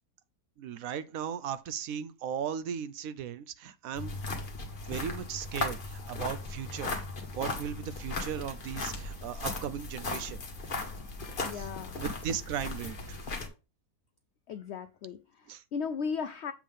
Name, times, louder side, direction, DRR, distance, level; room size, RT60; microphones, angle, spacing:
voice 1, 0.6-4.2 4.8-6.9 7.3-10.4 11.5-11.7 12.0-13.2 15.5-15.6, right 8 dB, 70° right, 0.9 m, -37 dB
sound 1, 3.9-13.5, left 2 dB, 35° left, 1.3 m, -37 dB
voice 2, 11.4-12.0 14.5-16.5, left 6 dB, 75° left, 0.6 m, -36 dB
7.4 x 3.5 x 5.4 m
omnidirectional pair, 1.7 m